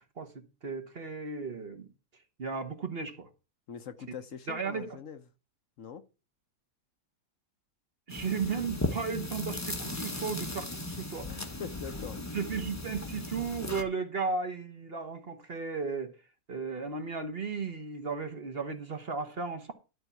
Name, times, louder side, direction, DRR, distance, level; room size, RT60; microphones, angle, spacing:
voice 1, 0.0-1.9 2.4-3.3 4.5-4.9 8.1-11.3 12.3-16.1 16.5-19.7, right 5 dB, 45° right, 1.3 m, -35 dB
voice 2, 3.7-5.2 5.8-6.0 11.3-12.2, left 7 dB, 60° left, 1.2 m, -43 dB
sound 1, 8.1-13.8, left 2 dB, 15° left, 0.9 m, -37 dB
12.0 x 4.3 x 8.2 m
omnidirectional pair, 1.5 m